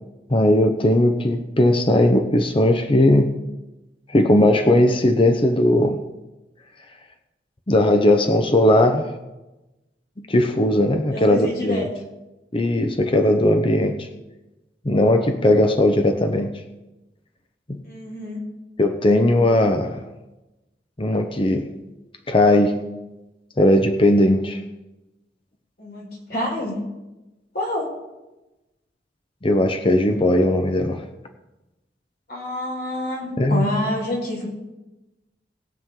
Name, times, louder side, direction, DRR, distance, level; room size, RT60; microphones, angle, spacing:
voice 1, 0.3-3.3 4.1-6.0 7.7-9.1 10.2-11.9 12.5-14.1 14.8-16.5 17.7-17.8 18.8-20.0 21.0-21.7 22.3-22.8 23.6-24.6 29.4-31.0 33.4-33.7, left 1 dB, 30° left, 0.8 m, -18 dB
voice 2, 11.1-11.9 17.8-18.4 25.8-26.8 27.5-27.9 32.3-34.5, left 1 dB, 60° left, 4.6 m, -27 dB
20.0 x 7.4 x 3.7 m
head